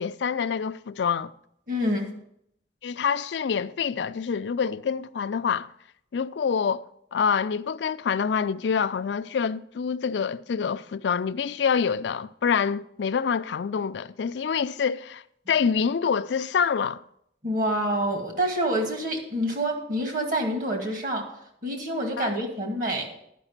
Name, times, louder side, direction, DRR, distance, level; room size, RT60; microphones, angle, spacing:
voice 1, 0.0-1.3 2.8-5.7 6.1-6.9 7.1-17.0 22.2-22.3, left 6 dB, 80° left, 0.4 m, -26 dB
voice 2, 1.7-2.1 17.4-21.3 21.6-23.1, right 1 dB, 50° right, 2.2 m, -27 dB
11.0 x 5.8 x 7.3 m
head